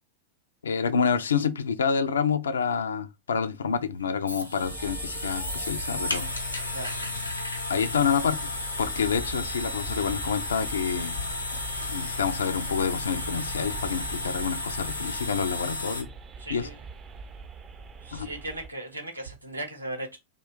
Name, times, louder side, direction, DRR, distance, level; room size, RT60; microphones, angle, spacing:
voice 1, 0.6-6.3 7.7-8.5 8.8-11.2 11.9-16.1 16.5-16.7 18.1-18.3, left 6 dB, 70° left, 0.3 m, -28 dB
sound 1, 3.6-16.0, left 2 dB, 85° left, 0.9 m, -33 dB
sound 2, 4.6-18.7, right 5 dB, 25° right, 0.4 m, -42 dB
voice 2, 16.4-16.8 18.0-20.2, right 1 dB, 85° right, 0.8 m, -37 dB
2.4 x 2.3 x 3.5 m
figure-of-eight pair, 90°, 0 cm